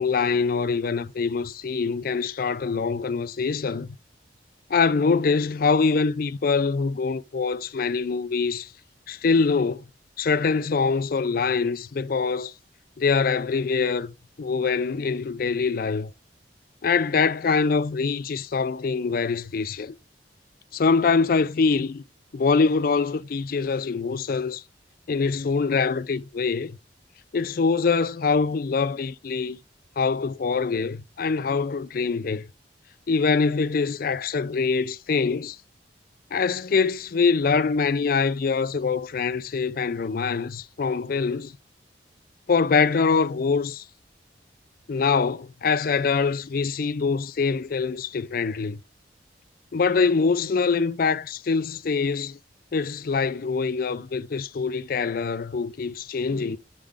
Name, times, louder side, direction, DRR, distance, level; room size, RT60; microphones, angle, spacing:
voice 1, 0.0-4.0 4.7-8.7 9.1-9.8 10.2-12.5 13.0-16.1 16.8-20.0 20.7-22.0 22.3-24.6 25.1-26.8 27.3-29.6 30.0-32.5 33.1-35.6 36.3-41.5 42.5-43.8 44.9-48.8 49.7-52.4 52.7-56.6, left 5 dB, 50° left, 0.4 m, -24 dB
9.8 x 3.7 x 3.4 m
head